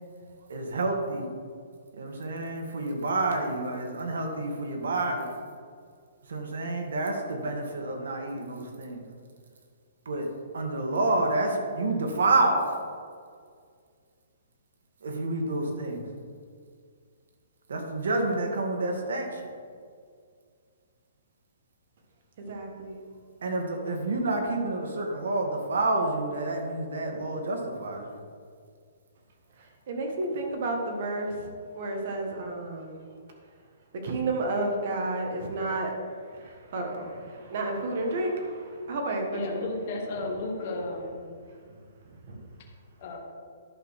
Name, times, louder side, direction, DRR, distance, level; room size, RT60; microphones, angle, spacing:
voice 1, 0.5-1.3 1.9-5.3 6.3-9.0 10.1-10.3 10.5-12.8 15.0-16.0 17.7-19.4 23.4-28.2, right 2 dB, 80° right, 2 dB, 1.8 m, -28 dB
voice 2, 22.4-23.0 29.6-31.5 31.7-33.0 34.0-35.9 36.3-39.6 42.3-42.4, right 2 dB, 45° right, 2 dB, 1.6 m, -31 dB
voice 3, 39.3-41.2 43.0-43.2, left 2 dB, 35° left, 0 dB, 1.1 m, -33 dB
11.0 x 4.2 x 6.4 m, 2.1 s
hypercardioid pair, 175°, 0 cm